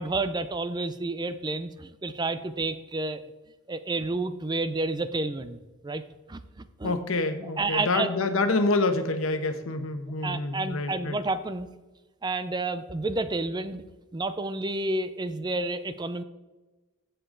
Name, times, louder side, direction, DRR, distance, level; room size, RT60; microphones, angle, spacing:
voice 1, 0.0-3.2 3.7-5.6 5.8-6.0 6.3-7.0 7.6-8.1 10.2-11.7 12.2-13.8 14.1-16.2, right 2 dB, 20° right, 12 dB, 0.4 m, -30 dB
voice 2, 6.8-11.2, left 2 dB, 80° left, 8 dB, 1.1 m, -27 dB
15.5 x 6.8 x 3.8 m, 1.2 s
head